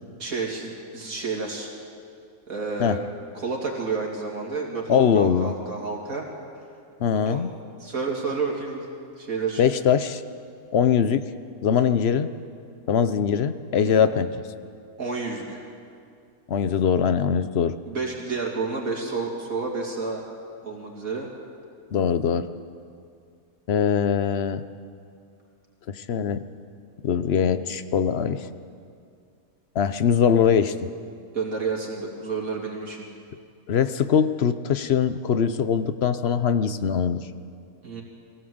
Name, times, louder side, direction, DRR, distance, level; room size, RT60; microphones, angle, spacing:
voice 1, 0.2-1.7 2.5-3.0 3.3-6.3 7.3-7.4 7.8-8.9 9.2-9.6 13.8-13.9 15.0-15.6 17.9-20.2 20.6-21.3 31.3-33.1 37.8-38.0, right 4 dB, 75° right, -1 dB, 3.1 m, -30 dB
voice 2, 4.9-5.5 7.0-7.5 9.6-10.2 10.7-11.3 11.6-12.3 12.9-14.3 16.5-17.8 21.9-22.5 23.7-24.6 25.9-26.4 27.0-28.5 29.7-30.7 33.7-37.2, left 7 dB, 55° left, 12 dB, 0.9 m, -22 dB
22.5 x 17.0 x 7.9 m, 2.3 s
omnidirectional pair, 1.5 m